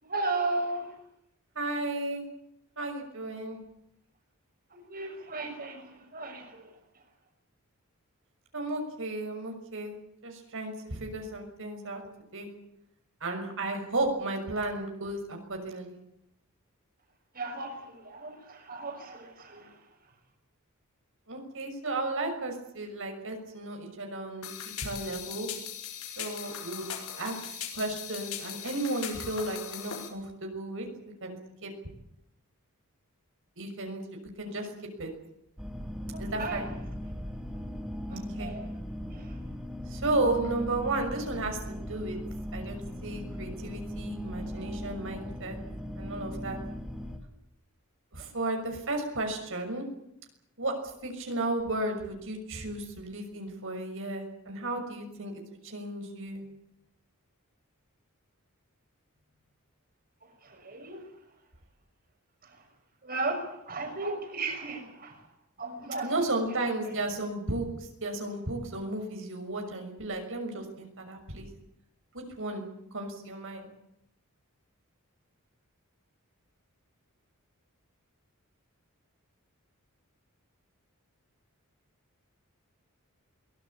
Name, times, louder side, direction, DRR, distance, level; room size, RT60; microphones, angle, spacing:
voice 1, 0.0-0.9 4.7-6.7 17.3-19.8 36.1-36.7 38.1-38.7 39.1-39.3 60.4-61.0 62.4-62.6 63.0-65.3 65.6-66.1 66.5-67.0, right 3 dB, 40° right, 3 dB, 6.3 m, -36 dB
voice 2, 1.5-2.3 2.8-3.6 8.5-10.0 10.2-12.0 12.3-12.5 13.2-15.9 21.3-25.5 26.2-26.9 27.2-27.3 27.7-31.7 33.6-34.7 35.0-35.1 36.2-36.6 38.1-38.5 39.9-42.2 42.5-45.6 46.0-46.6 48.1-49.8 50.6-50.7 51.0-55.3 55.6-56.4 66.0-71.5 72.1-73.7, right 2 dB, 60° right, 3 dB, 6.3 m, -34 dB
sound 1, 24.4-30.1, left 9 dB, 75° left, 6.2 m, -39 dB
sound 2, 35.6-47.2, equal, 5° right, 2.9 m, -38 dB
23.0 x 20.5 x 8.7 m, 0.79 s
head